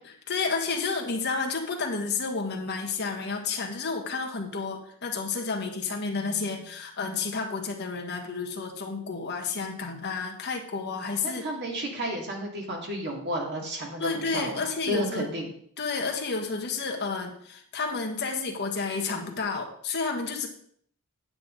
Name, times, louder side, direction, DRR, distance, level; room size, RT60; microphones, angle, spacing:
voice 1, 0.3-11.4 14.0-15.3 15.8-20.5, left 4 dB, 50° left, 2 dB, 1.6 m, -31 dB
voice 2, 11.2-15.5, equal, 50° right, 0 dB, 2.3 m, -32 dB
9.7 x 7.9 x 3.8 m, 0.62 s
head